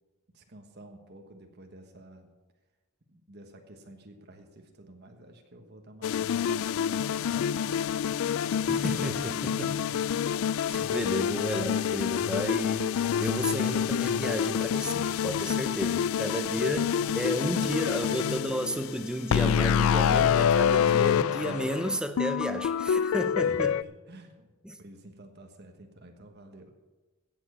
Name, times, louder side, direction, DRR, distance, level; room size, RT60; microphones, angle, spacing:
voice 1, 0.3-2.3 3.1-8.8 9.2-10.2 15.7-18.2 23.4-24.5 24.8-26.7, right 1 dB, 50° right, 4 dB, 1.3 m, -50 dB
sound 1, 6.0-23.8, left 8 dB, 70° left, 0.3 m, -27 dB
voice 2, 8.7-9.7 10.7-16.9 17.2-23.7 24.6-24.8, right 1 dB, 5° right, 8 dB, 0.6 m, -33 dB
17.0 x 7.3 x 6.9 m, 1.2 s
head